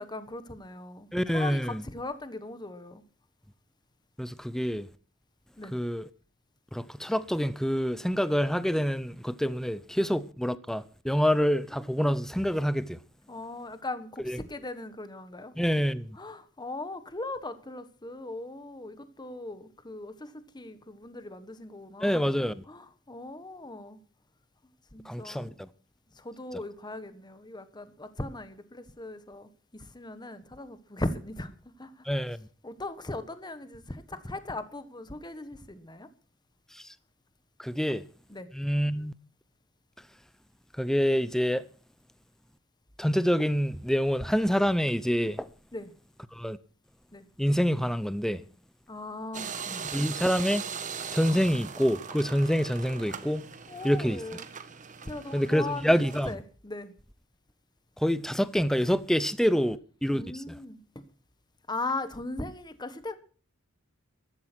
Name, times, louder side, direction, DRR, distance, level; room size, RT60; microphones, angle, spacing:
voice 1, 0.0-3.0 5.6-5.8 11.2-11.3 13.3-15.5 16.2-24.0 24.9-25.5 26.1-32.0 32.6-36.1 38.3-38.5 45.7-45.9 47.1-47.2 48.9-49.9 53.7-54.5 55.1-56.9 60.1-61.0 61.7-63.1, left 2 dB, 20° left, 1.3 m, -39 dB
voice 2, 1.1-1.8 4.2-4.9 5.7-6.1 6.7-13.0 14.3-14.4 15.6-16.2 22.0-22.6 25.0-25.7 32.0-32.4 36.7-36.9 37.6-38.1 38.5-39.1 40.8-41.6 43.0-45.5 46.3-46.6 47.4-48.4 49.9-50.6 51.1-53.4 53.8-54.2 55.3-56.4 58.0-60.6, equal, ahead, 0.6 m, -27 dB
sound 1, 49.3-56.3, right 6 dB, 35° right, 1.4 m, -40 dB
15.0 x 12.5 x 6.1 m
head